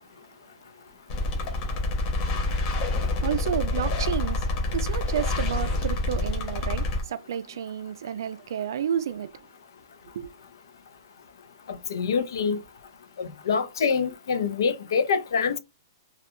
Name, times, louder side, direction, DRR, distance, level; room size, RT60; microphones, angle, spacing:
sound 1, 1.1-7.0, left 2 dB, 25° left, 0.6 m, -27 dB
voice 1, 3.2-9.3 10.1-10.3, right 9 dB, 70° right, 0.3 m, -31 dB
voice 2, 11.9-12.6 13.2-15.6, left 5 dB, 75° left, 0.5 m, -25 dB
2.3 x 2.1 x 2.9 m
hypercardioid pair, 165°, 2 cm